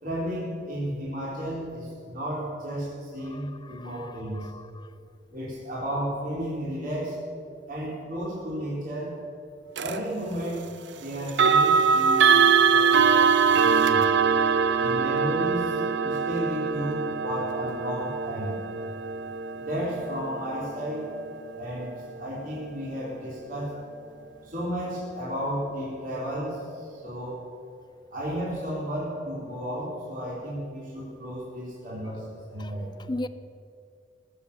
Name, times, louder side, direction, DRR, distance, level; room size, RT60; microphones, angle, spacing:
voice 1, 0.0-4.5 5.3-7.2 7.7-9.2 9.8-10.7 11.0-14.1 14.8-18.6 19.6-21.1 21.5-21.9 22.2-23.8 24.4-27.4 28.1-32.9, equal, 50° right, 3.9 m, -33 dB
voice 2, 3.2-4.9 32.0-32.2 32.6-33.3, left 1 dB, 25° left, 0.6 m, -39 dB
sound 1, 9.8-10.0 11.3-22.2, right 6 dB, 70° right, 0.8 m, -23 dB
20.5 x 7.7 x 8.4 m
head